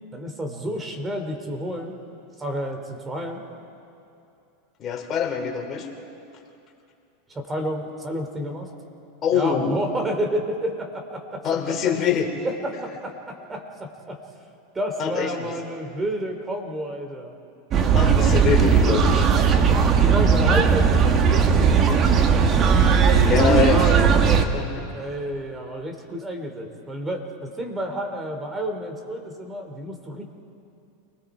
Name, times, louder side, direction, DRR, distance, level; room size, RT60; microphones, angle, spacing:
voice 1, 0.1-1.9 2.4-3.4 7.3-8.7 9.3-11.4 12.4-14.2 14.7-17.3 20.0-22.5 24.9-30.3, equal, 20° right, 4 dB, 3.1 m, -30 dB
voice 2, 4.8-5.9 9.2-9.8 11.4-12.3 15.0-15.5 17.8-19.3 23.2-24.8, left 7 dB, 35° left, 2 dB, 3.1 m, -24 dB
sound 1, 17.7-24.4, right 6 dB, 35° right, 1.7 m, -17 dB
29.0 x 20.5 x 5.0 m, 2.6 s
hypercardioid pair, 110°, 0 cm